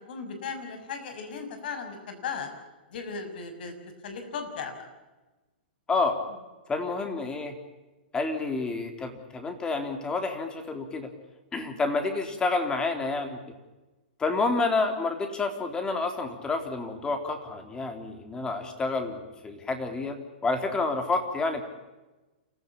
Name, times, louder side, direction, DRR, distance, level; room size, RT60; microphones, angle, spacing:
voice 1, 0.1-2.5 2.9-3.7 4.0-4.7, left 5 dB, 65° left, 7 dB, 6.5 m, -36 dB
voice 2, 6.7-7.5 8.1-11.1 11.5-13.4 14.2-21.6, left 3 dB, 15° left, 6 dB, 3.7 m, -29 dB
28.5 x 15.5 x 8.7 m, 1.1 s
hypercardioid pair, 130°, 6 cm